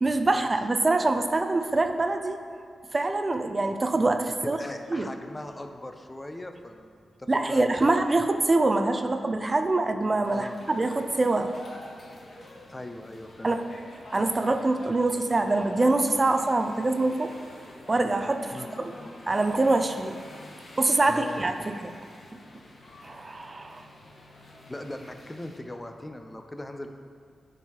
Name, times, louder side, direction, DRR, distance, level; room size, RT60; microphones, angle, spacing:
voice 1, 0.0-2.4 2.9-4.6 4.9-5.1 7.3-11.5 13.4-13.7 14.1-17.3 17.9-18.9 19.3-20.2 20.8-21.9 23.0-23.9, right 2 dB, 35° right, 7 dB, 0.4 m, -25 dB
voice 2, 4.4-8.0 10.3-10.6 12.7-13.5 18.5-18.7 21.1-21.4 24.7-26.9, left 1 dB, 20° left, 5 dB, 0.6 m, -39 dB
sound 1, 10.2-25.6, left 1 dB, 65° left, 1.1 m, -46 dB
9.6 x 4.6 x 3.0 m, 2.2 s
cardioid pair, 50°, 0 cm